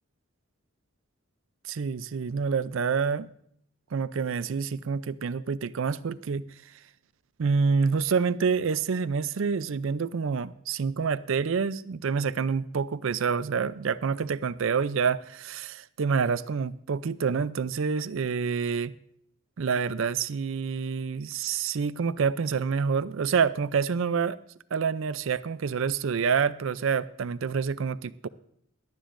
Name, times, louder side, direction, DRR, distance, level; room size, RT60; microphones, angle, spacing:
voice 1, 1.7-3.3 3.9-6.4 7.4-15.7 16.0-18.9 19.6-24.4 24.7-28.3, right 5 dB, 65° right, 16 dB, 0.4 m, -27 dB
17.0 x 12.0 x 2.6 m, 0.68 s
head